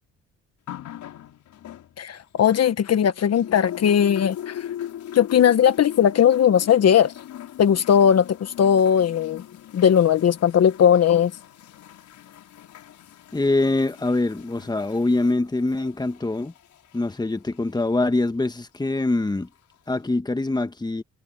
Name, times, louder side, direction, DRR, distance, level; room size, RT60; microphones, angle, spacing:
sound 1, 0.7-3.0 3.4-18.1 19.0-19.1, left 11 dB, 75° left, 6.2 m, -40 dB
voice 1, 2.0-4.6 5.1-7.1 7.6-9.4 9.7-11.3, left 8 dB, 55° left, 1.3 m, -18 dB
voice 2, 13.3-16.5 16.9-19.5 19.9-21.0, left 2 dB, 15° left, 1.6 m, -24 dB
cardioid pair, 90°, 30 cm